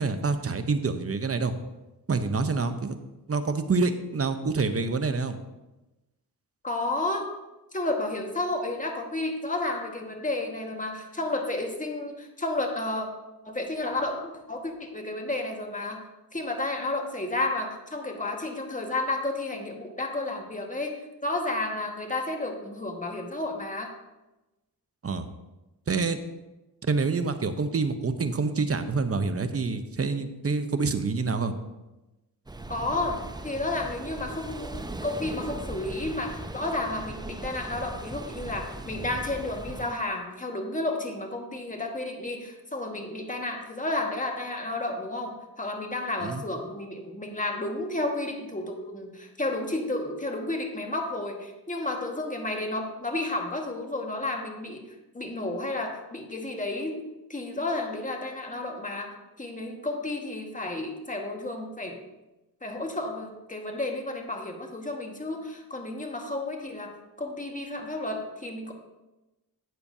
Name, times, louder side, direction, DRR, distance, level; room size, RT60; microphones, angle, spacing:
voice 1, 0.0-1.5 2.1-3.0 3.3-5.4 25.0-25.3 25.9-26.2 26.8-31.5 46.2-46.4, right 4 dB, 35° right, 9 dB, 0.9 m, -27 dB
voice 2, 6.6-7.3 7.7-13.1 13.4-16.0 16.3-23.9 32.7-54.9 55.1-57.0 57.3-62.0 62.6-68.7, left 2 dB, 20° left, 2 dB, 1.6 m, -32 dB
sound 1, 32.5-39.9, right 2 dB, 10° right, 0.6 m, -38 dB
12.0 x 8.5 x 2.8 m, 1.0 s
cardioid pair, 70°, 40 cm